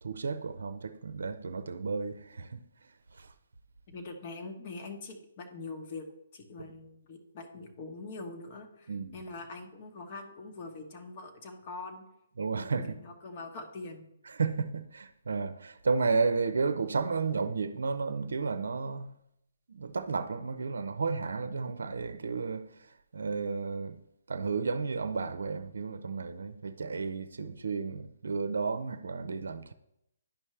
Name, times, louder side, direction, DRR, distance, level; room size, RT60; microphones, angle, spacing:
voice 1, 0.0-2.6 3.1-3.3 8.9-9.2 12.4-13.0 14.3-19.1 19.7-24.0 24.3-29.7, right 4 dB, 70° right, 0.5 m, -32 dB
voice 2, 3.9-6.0 6.3-12.0 12.6-14.0, left 3 dB, 40° left, 1.3 m, -43 dB
10.5 x 5.5 x 3.2 m
figure-of-eight pair, 140°, 0 cm